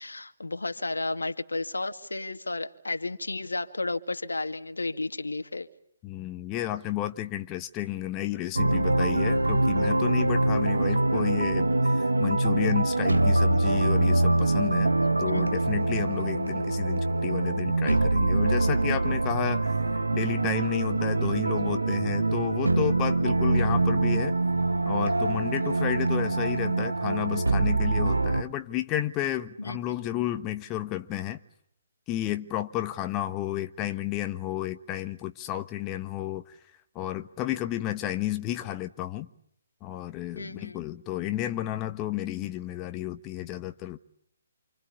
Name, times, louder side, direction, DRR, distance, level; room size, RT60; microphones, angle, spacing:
voice 1, 0.0-5.7 15.3-15.6 29.6-30.0 40.4-40.8, left 2 dB, 80° left, 2.1 m, -33 dB
voice 2, 6.0-14.9 15.2-24.3 24.9-31.4 32.1-36.6 36.9-39.3 39.8-44.0, left 13 dB, 20° left, 1.2 m, -32 dB
sound 1, 8.5-28.4, right 2 dB, 85° right, 1.8 m, -24 dB
29.0 x 26.5 x 7.1 m
figure-of-eight pair, 135°, 0 cm